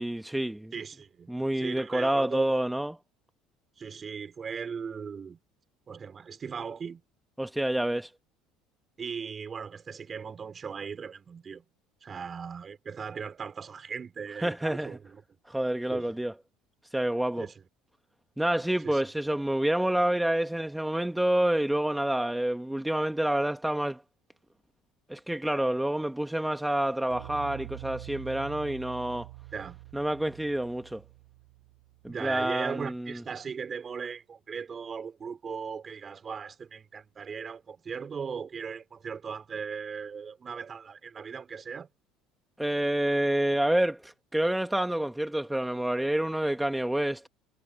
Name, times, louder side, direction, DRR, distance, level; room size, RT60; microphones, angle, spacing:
voice 1, 0.0-0.7 1.3-3.0 7.4-8.1 14.4-15.0 15.5-16.3 16.9-17.5 18.4-24.0 25.1-29.3 29.9-31.0 32.0-33.2 42.6-47.3, right 1 dB, 5° right, 1.5 m, -28 dB
voice 2, 0.7-2.7 3.8-5.4 5.9-7.0 9.0-11.7 12.0-15.2 15.9-16.2 17.4-17.5 18.8-19.0 29.5-29.8 32.1-41.9, right 6 dB, 35° right, 4.0 m, -38 dB
sound 1, 27.1-32.3, right 25 dB, 85° right, 7.5 m, -46 dB
supercardioid pair, 85°, 0 cm